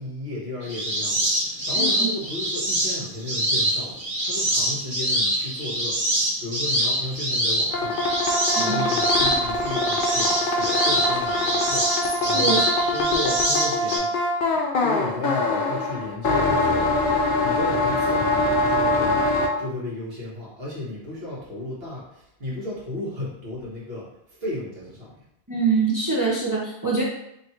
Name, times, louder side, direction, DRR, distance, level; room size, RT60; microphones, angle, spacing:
voice 1, 0.0-14.1 14.4-25.2, left 1 dB, 65° right, -7 dB, 1.6 m, -34 dB
sound 1, 0.6-14.0, right 1 dB, 40° right, 1.3 m, -25 dB
voice 2, 1.8-2.1 8.6-8.8 12.3-12.6 25.5-27.0, right 4 dB, 25° right, -5 dB, 0.6 m, -24 dB
sound 2, 7.7-19.5, left 2 dB, 55° left, 0.7 m, -23 dB
3.1 x 2.5 x 4.2 m, 0.80 s
omnidirectional pair, 1.1 m